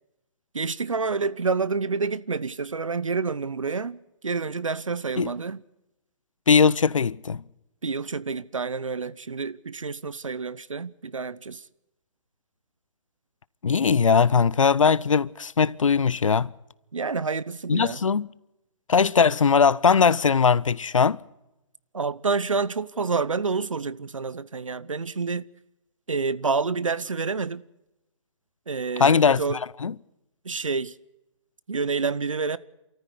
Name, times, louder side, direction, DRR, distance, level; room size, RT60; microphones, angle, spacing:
voice 1, 0.5-5.6 7.8-11.6 16.9-18.0 21.9-25.5 26.1-27.6 28.7-29.6 30.4-30.9 31.7-32.6, right 4 dB, 90° right, 0.9 m, -28 dB
voice 2, 6.5-7.4 13.6-16.5 17.7-18.3 18.9-21.2 29.0-29.4 29.8-29.9, left 6 dB, 85° left, 0.6 m, -20 dB
25.5 x 14.0 x 8.2 m
hypercardioid pair, 140°, 16 cm